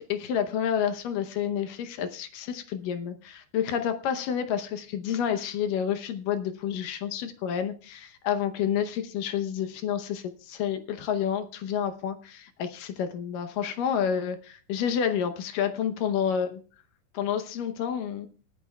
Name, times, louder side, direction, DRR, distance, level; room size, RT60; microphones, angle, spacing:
voice 1, 0.0-16.6 17.1-18.3, left 8 dB, 70° left, 8 dB, 2.2 m, -29 dB
27.5 x 10.0 x 2.3 m, 0.38 s
omnidirectional pair, 4.5 m